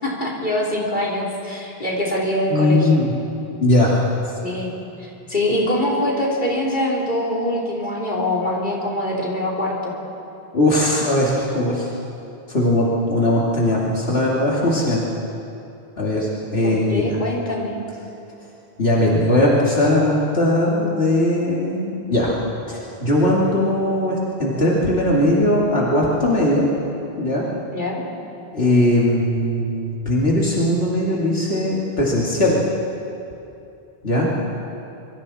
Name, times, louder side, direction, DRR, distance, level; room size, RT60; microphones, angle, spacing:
voice 1, 0.0-3.0 4.4-4.7 5.0-9.9 16.6-17.7 27.7-28.0, left 1 dB, 50° left, -4 dB, 3.9 m, -23 dB
voice 2, 2.5-3.1 3.6-4.1 10.5-11.9 12.5-15.0 16.0-17.2 18.8-22.3 22.7-26.7 27.2-27.5 28.5-32.6 34.0-34.3, left 1 dB, 80° left, -5 dB, 2.8 m, -19 dB
25.5 x 24.0 x 4.3 m, 2.7 s
omnidirectional pair, 1.0 m